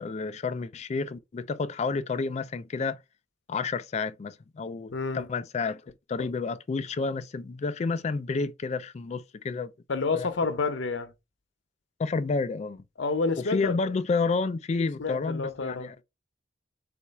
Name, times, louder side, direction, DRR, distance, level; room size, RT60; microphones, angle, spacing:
voice 1, 0.0-3.0 3.5-9.7 10.1-10.3 12.0-12.8 13.5-16.0, left 4 dB, 35° left, 0.3 m, -30 dB
voice 2, 4.9-5.3 6.2-6.3 9.9-11.1 13.0-13.8 14.7-15.9, left 4 dB, 85° left, 0.7 m, -29 dB
4.2 x 2.3 x 4.2 m
head